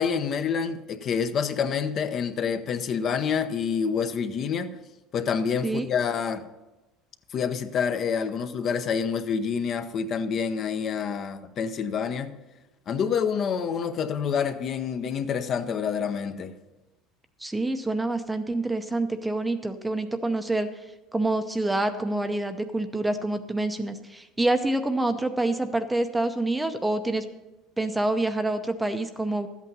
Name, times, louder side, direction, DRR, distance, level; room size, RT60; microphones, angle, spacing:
voice 1, 0.0-4.7 5.1-6.4 7.3-12.3 12.9-16.5, left 6 dB, 40° left, 9 dB, 0.8 m, -27 dB
voice 2, 17.4-20.7 21.1-27.2 27.8-29.5, right 2 dB, 10° right, 8 dB, 0.6 m, -27 dB
13.0 x 8.4 x 5.4 m, 1.1 s
cardioid pair, 135°, 0 cm